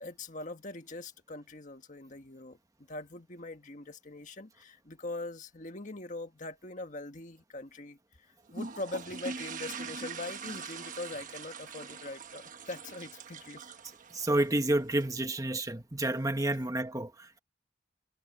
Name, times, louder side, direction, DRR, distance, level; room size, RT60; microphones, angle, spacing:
voice 1, 0.0-2.6 2.9-8.0 8.5-13.6 16.5-16.6, left 2 dB, 40° left, 1.6 m, -42 dB
sound 1, 8.5-15.1, right 4 dB, 40° right, 1.2 m, -43 dB
voice 2, 14.1-17.4, right 1 dB, 20° right, 1.3 m, -30 dB
head